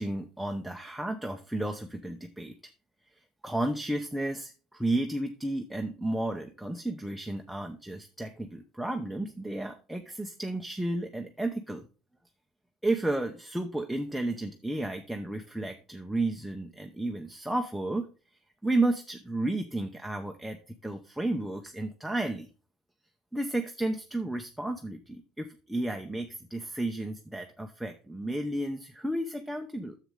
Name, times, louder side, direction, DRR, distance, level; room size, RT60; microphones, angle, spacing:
voice 1, 0.0-2.5 3.1-11.9 12.8-18.1 18.6-22.5 23.3-30.0, right 2 dB, ahead, 3 dB, 0.7 m, -32 dB
10.0 x 7.4 x 3.7 m, 0.35 s
cardioid pair, 140°, 0 cm